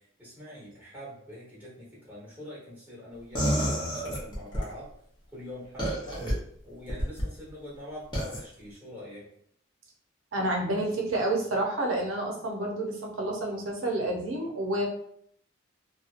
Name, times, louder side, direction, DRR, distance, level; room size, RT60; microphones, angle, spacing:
voice 1, 0.2-4.9 5.3-6.3 6.6-9.3, left 1 dB, 10° right, -7 dB, 1.1 m, -44 dB
sound 1, 3.3-4.7 5.8-6.3 6.9-7.3 8.1-8.4, equal, 20° left, 0.8 m, -29 dB
voice 2, 10.3-14.8, right 1 dB, 75° right, 0 dB, 0.7 m, -29 dB
2.7 x 2.3 x 2.5 m, 0.66 s
head